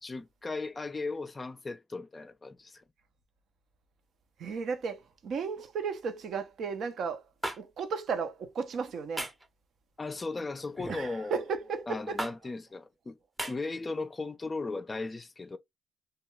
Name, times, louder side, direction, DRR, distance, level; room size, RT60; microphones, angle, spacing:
voice 1, 0.0-2.8 10.0-11.4 11.9-13.2 13.5-15.6, left 3 dB, 25° left, 0.3 m, -37 dB
voice 2, 4.4-7.2 7.6-9.3 10.9-12.2, right 5 dB, 65° right, 0.5 m, -34 dB
sound 1, 7.4-7.6 9.2-9.5 10.8-11.1 12.2-12.3 13.4-13.5, right 1 dB, 15° right, 0.6 m, -34 dB
2.3 x 2.2 x 2.9 m
cardioid pair, 90°, 0 cm